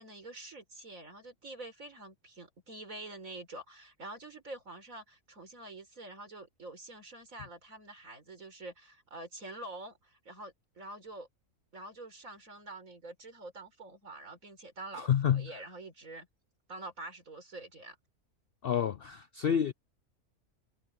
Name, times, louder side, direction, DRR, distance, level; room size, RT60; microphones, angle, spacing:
voice 1, 0.0-11.3 11.7-16.3 16.7-18.0, right 2 dB, 65° right, 4.8 m, -46 dB
voice 2, 14.9-15.5 18.6-19.7, left 8 dB, 60° left, 0.6 m, -29 dB
omnidirectional pair, 1.5 m